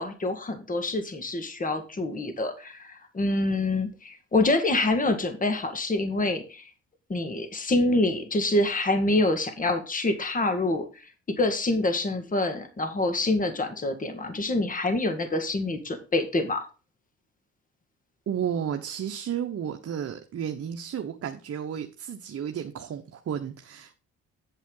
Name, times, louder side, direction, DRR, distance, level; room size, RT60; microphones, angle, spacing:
voice 1, 0.0-6.7 7.1-11.1 11.4-16.6, left 2 dB, 25° left, 1.7 m, -26 dB
voice 2, 18.3-24.0, right 8 dB, 50° right, 1.0 m, -32 dB
8.2 x 8.2 x 3.9 m
cardioid pair, 90°, 30 cm